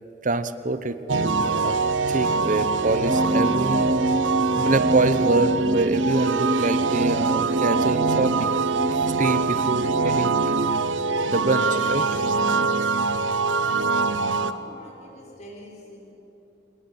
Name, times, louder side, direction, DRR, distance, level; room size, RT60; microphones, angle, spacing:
voice 1, 0.2-1.8 2.1-3.9 4.6-8.6 8.9-10.7 11.3-12.1, right 2 dB, 45° right, 12 dB, 1.1 m, -25 dB
sound 1, 1.1-14.5, right 4 dB, 90° right, 1.0 m, -23 dB
sound 2, 3.1-10.5, equal, 20° right, 0.7 m, -27 dB
voice 2, 13.5-14.0 14.4-16.1, left 1 dB, 40° left, -1 dB, 6.0 m, -45 dB
28.5 x 19.0 x 8.6 m, 2.9 s
head